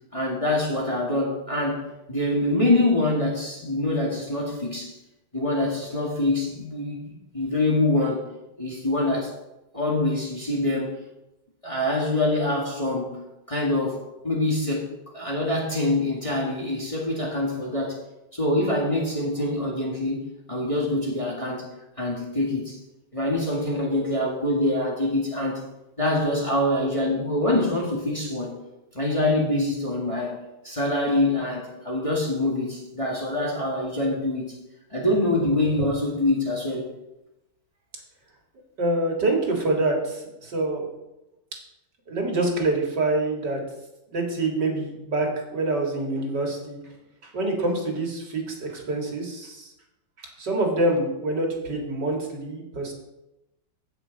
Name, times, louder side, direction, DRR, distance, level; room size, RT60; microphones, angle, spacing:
voice 1, 0.1-5.0 5.3-8.3 8.6-9.3 9.7-11.0 11.6-14.9 15.1-18.0 18.3-21.7 22.0-22.8 23.1-25.6 26.0-28.6 28.9-30.4 30.6-34.5 34.9-36.9, left 1 dB, 15° left, -3 dB, 1.9 m, -25 dB
voice 2, 38.8-40.9 42.1-43.6 44.1-46.8 47.2-49.7 50.2-52.9, right 2 dB, 60° right, 0 dB, 2.5 m, -26 dB
16.0 x 6.2 x 4.0 m, 0.94 s
omnidirectional pair, 2.1 m